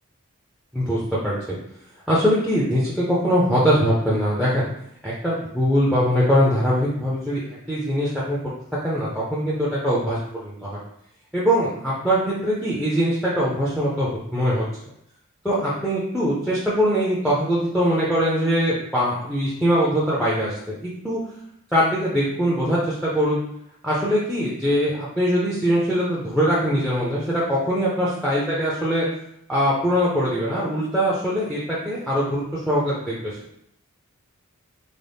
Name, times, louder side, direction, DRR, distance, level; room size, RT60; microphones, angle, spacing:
voice 1, 0.7-1.6 2.1-4.7 5.0-7.4 7.7-8.4 8.8-10.7 11.3-14.6 15.4-21.2 21.7-23.4 23.8-29.1 29.5-33.4, equal, ahead, -7 dB, 0.5 m, -22 dB
3.9 x 2.0 x 3.3 m, 0.73 s
head